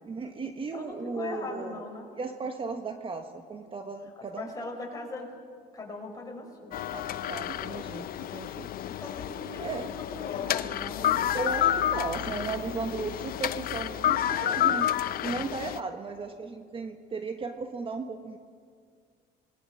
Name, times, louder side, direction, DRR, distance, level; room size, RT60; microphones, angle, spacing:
voice 1, 0.0-1.8 2.2-4.5 6.9-8.7 9.6-9.9 11.3-18.4, right 4 dB, 30° right, 6 dB, 1.4 m, -36 dB
voice 2, 0.7-2.1 4.4-5.3 5.7-6.8 8.9-11.2, left 3 dB, 20° left, 0 dB, 6.1 m, -40 dB
sound 1, 6.7-15.8, left 11 dB, 60° left, 0.7 m, -30 dB
26.5 x 21.0 x 6.4 m, 2.1 s
cardioid pair, 110°, 17 cm